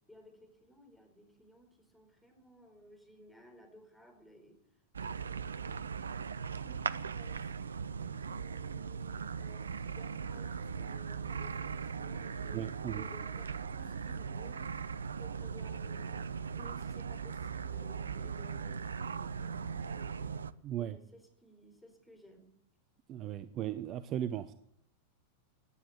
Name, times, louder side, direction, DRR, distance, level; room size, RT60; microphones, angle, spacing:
voice 1, 0.1-4.6 6.5-14.8 15.2-20.4 20.8-22.5, equal, 5° left, 4 dB, 4.4 m, -57 dB
sound 1, 4.9-20.5, right 6 dB, 70° right, 0.6 m, -39 dB
voice 2, 12.5-13.0 20.6-21.0 23.1-24.5, right 11 dB, 35° right, 13 dB, 0.8 m, -37 dB
16.5 x 10.0 x 8.5 m, 0.73 s
figure-of-eight pair, 90°, 0 cm